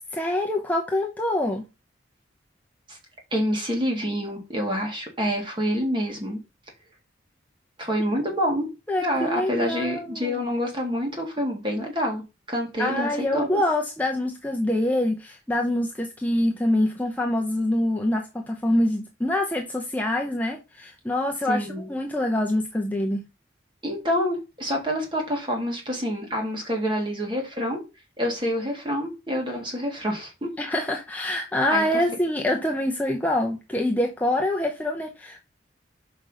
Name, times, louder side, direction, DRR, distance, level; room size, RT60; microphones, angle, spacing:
voice 1, 0.1-1.6 8.9-10.4 12.8-23.3 30.6-35.4, left 1 dB, 10° left, 0.8 m, -25 dB
voice 2, 3.3-6.4 7.8-8.7 9.0-12.2 12.5-13.6 21.5-21.9 23.8-27.8 28.2-30.5 31.7-31.8, equal, 25° right, 2.4 m, -27 dB
5.9 x 5.4 x 4.9 m
head